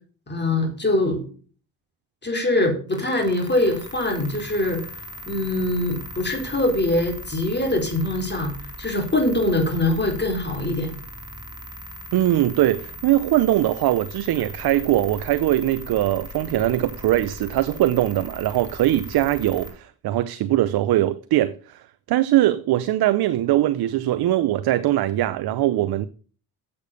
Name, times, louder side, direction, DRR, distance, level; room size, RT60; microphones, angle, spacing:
voice 1, 0.3-1.2 2.2-4.8 5.3-8.5 8.8-10.9, left 1 dB, 25° left, 4.0 m, -23 dB
sound 1, 2.9-19.7, equal, 10° right, 3.7 m, -39 dB
voice 2, 12.1-26.1, right 14 dB, 70° right, 0.7 m, -21 dB
8.1 x 6.8 x 6.8 m
cardioid pair, 75°, 39 cm